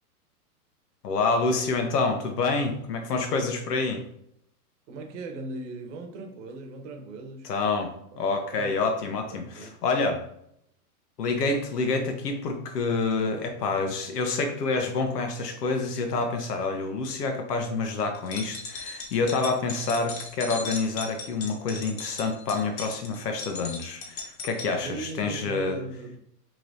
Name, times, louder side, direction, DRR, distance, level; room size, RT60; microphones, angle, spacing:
voice 1, 1.0-4.0 7.4-7.9 8.2-10.2 11.2-25.8, left 3 dB, 85° left, 4 dB, 0.9 m, -27 dB
voice 2, 4.9-7.5 8.5-9.8 17.7-17.8 24.7-26.2, right 3 dB, 50° right, 4 dB, 1.0 m, -39 dB
sound 1, 18.1-24.7, left 4 dB, 60° left, 1.2 m, -38 dB
4.7 x 3.0 x 2.6 m, 0.73 s
hypercardioid pair, 135°, 46 cm